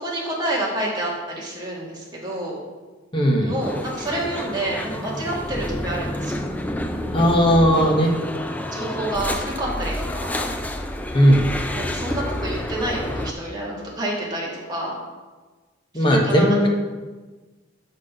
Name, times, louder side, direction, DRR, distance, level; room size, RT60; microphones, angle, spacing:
voice 1, 0.0-2.6 3.4-6.5 7.5-8.0 8.7-10.5 11.7-15.0 15.9-16.7, right 1 dB, 20° right, -4 dB, 1.8 m, -28 dB
voice 2, 3.1-3.5 7.1-8.1 11.1-11.5 15.9-16.7, equal, 25° left, 0 dB, 1.0 m, -17 dB
sound 1, 3.6-13.3, left 1 dB, 10° left, 0.4 m, -29 dB
6.1 x 5.8 x 5.2 m, 1.3 s
head